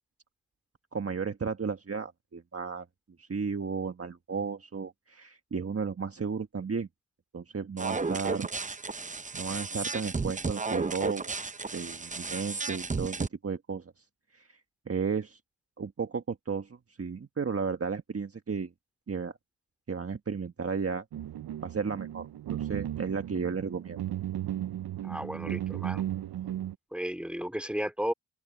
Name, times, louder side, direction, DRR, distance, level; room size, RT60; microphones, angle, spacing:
voice 1, 0.9-2.9 3.2-6.9 7.3-8.5 9.3-11.3 11.7-13.9 14.3-14.5 14.9-15.4 15.8-18.7 19.1-19.4 19.9-21.0 21.6-24.0, right 5 dB, 35° right, 1.5 m, -34 dB
sound 1, 7.8-13.3, right 4 dB, 20° right, 0.7 m, -33 dB
sound 2, 21.1-26.8, right 12 dB, 70° right, 0.7 m, -35 dB
voice 2, 25.0-26.0 26.9-28.1, equal, 5° right, 4.0 m, -34 dB
open air
cardioid pair, 70°, 38 cm